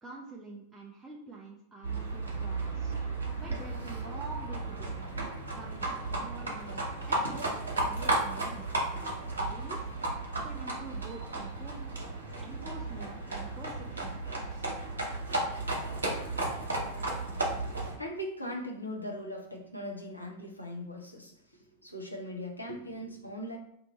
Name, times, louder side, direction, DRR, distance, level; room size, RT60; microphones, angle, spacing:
voice 1, 0.0-2.9 3.4-4.9 5.5-9.9 10.4-11.9 12.4-14.7, right 3 dB, 10° right, -4 dB, 0.5 m, -47 dB
Livestock farm animals working animals, 1.8-17.9, right 2 dB, 75° right, 1.0 m, -34 dB
voice 2, 17.3-21.4 21.8-23.6, equal, 85° left, 0 dB, 0.6 m, -40 dB
2.6 x 2.6 x 4.1 m, 0.74 s
figure-of-eight pair, 90°, 0 cm